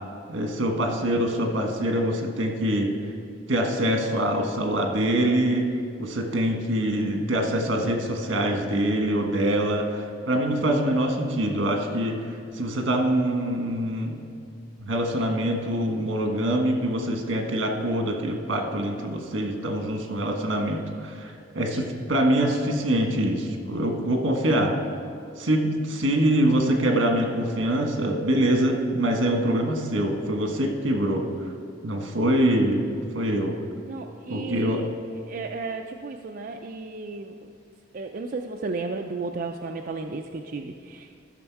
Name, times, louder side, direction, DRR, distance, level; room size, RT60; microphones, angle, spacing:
voice 1, 0.3-2.9 3.5-5.7 6.0-12.2 12.5-14.2 14.8-24.7 25.4-31.2 31.8-33.5 34.3-34.8, right 1 dB, 80° right, 3 dB, 1.4 m, -24 dB
voice 2, 33.9-34.9 35.3-37.5 37.9-41.3, right 3 dB, 50° right, 3 dB, 0.4 m, -34 dB
14.0 x 6.2 x 4.7 m, 2.4 s
head